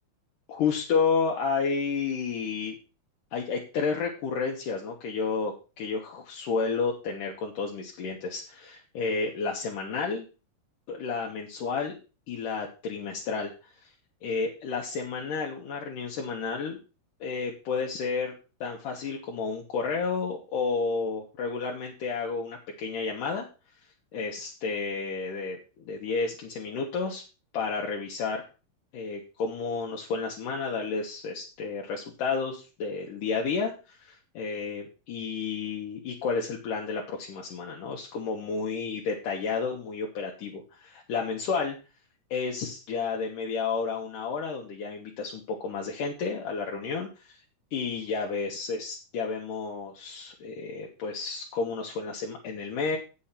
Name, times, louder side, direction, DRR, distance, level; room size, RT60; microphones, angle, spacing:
voice 1, 0.5-2.7 3.3-10.3 10.9-12.0 12.3-13.9 14.2-16.8 17.2-18.3 18.6-23.5 24.1-27.2 27.5-28.4 28.9-41.8 42.3-47.4 47.7-53.0, left 5 dB, 70° left, -1 dB, 2.8 m, -31 dB
8.5 x 7.2 x 5.7 m, 0.32 s
omnidirectional pair, 4.1 m